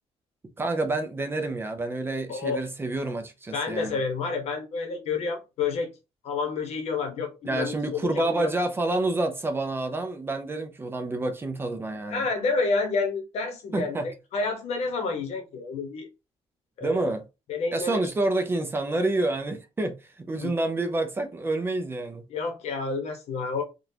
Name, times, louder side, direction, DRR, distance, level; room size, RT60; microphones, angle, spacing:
voice 1, 0.6-4.0 7.4-12.3 13.7-14.1 16.8-17.2 17.7-22.2, right 2 dB, 20° right, 0.5 m, -28 dB
voice 2, 2.3-2.6 3.5-5.9 6.2-8.5 12.1-16.1 16.8-17.1 17.5-18.3 20.4-20.5 22.3-23.6, left 4 dB, 70° left, 1.0 m, -29 dB
3.8 x 2.4 x 2.7 m
cardioid pair, 145°, 11 cm